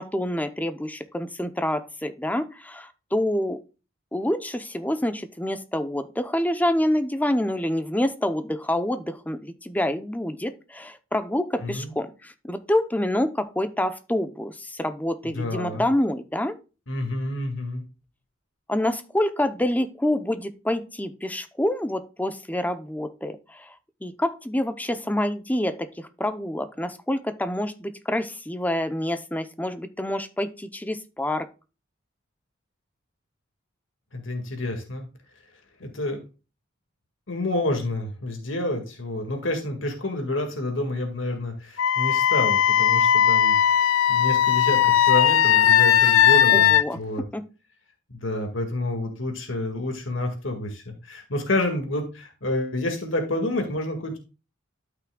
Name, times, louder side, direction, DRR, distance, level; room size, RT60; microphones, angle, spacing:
voice 1, 0.0-3.6 4.1-16.5 18.7-23.7 24.0-31.5 46.5-47.0 47.3-47.4, left 1 dB, 10° left, 10 dB, 0.6 m, -27 dB
voice 2, 11.6-11.9 15.3-15.9 16.9-17.8 34.1-35.1 35.8-36.2 37.3-47.2 48.1-54.2, left 2 dB, 75° left, 3 dB, 1.9 m, -29 dB
Wind instrument woodwind instrument, 41.8-46.8, left 10 dB, 90° left, 0.4 m, -18 dB
12.5 x 5.9 x 2.3 m, 0.31 s
head